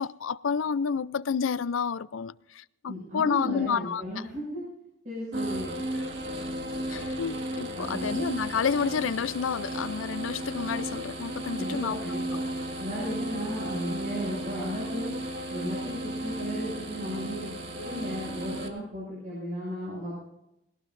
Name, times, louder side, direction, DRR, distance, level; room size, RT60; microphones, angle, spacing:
voice 1, 0.0-4.2 6.9-12.0, left 6 dB, 80° left, 0.5 m, -30 dB
voice 2, 2.9-4.6 5.0-5.8 7.7-8.2 11.6-12.4 12.8-15.1 15.5-20.1, equal, 40° right, 6.7 m, -35 dB
sound 1, 5.3-18.7, right 1 dB, 65° right, 1.8 m, -34 dB
20.5 x 18.0 x 2.6 m
head